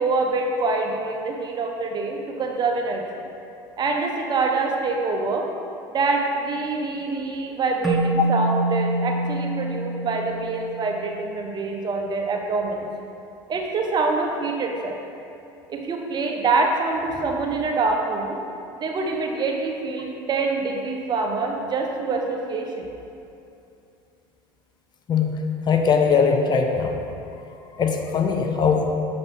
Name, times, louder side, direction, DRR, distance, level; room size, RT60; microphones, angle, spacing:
voice 1, 0.0-3.0 3.8-5.4 5.9-12.9 13.5-15.0 15.7-18.4 18.8-22.9, right 3 dB, 35° right, 2 dB, 1.0 m, -25 dB
Keyboard (musical), 7.8-11.1, right 2 dB, ahead, 0.8 m, -26 dB
voice 2, 25.1-25.4 25.7-27.0 27.7-28.9, left 5 dB, 35° left, 3 dB, 0.7 m, -20 dB
6.8 x 4.1 x 5.4 m, 2.7 s
hypercardioid pair, 85°, 12 cm